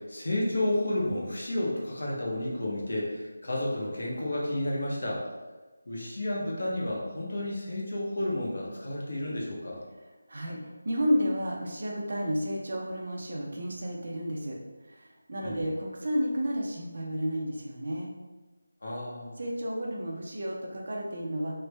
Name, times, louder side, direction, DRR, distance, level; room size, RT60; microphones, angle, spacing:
voice 1, 0.0-5.2 5.9-9.8 15.4-15.6 18.8-19.4, left 1 dB, 45° left, -4 dB, 0.7 m, -31 dB
voice 2, 10.3-14.6 14.9-18.1 19.4-21.6, equal, 35° right, -1 dB, 0.4 m, -31 dB
3.2 x 2.0 x 3.1 m, 1.2 s
figure-of-eight pair, 180°, 0 cm